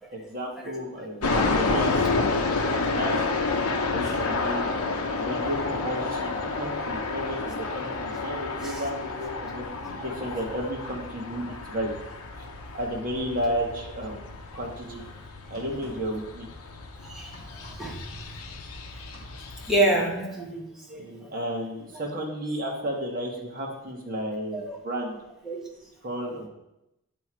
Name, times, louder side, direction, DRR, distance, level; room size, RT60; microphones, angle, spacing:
voice 1, 0.1-2.3 2.7-3.2 3.9-4.8 5.1-11.9 12.3-12.4 12.7-15.0 15.5-16.5 20.9-25.2 26.0-26.5, equal, 40° right, -1 dB, 1.5 m, -33 dB
sound 1, 1.2-19.8, left 3 dB, 75° left, 0.8 m, -30 dB
voice 2, 3.9-4.2 8.6-8.8 9.7-10.1 14.9-15.0 17.0-18.0 19.7-21.3 24.5-24.8 25.4-25.6, right 1 dB, ahead, -3 dB, 1.2 m, -29 dB
sound 2, 15.5-16.3 16.6-18.7 19.0-19.7, equal, 20° left, 2.5 m, -51 dB
9.8 x 3.5 x 4.5 m, 0.88 s
head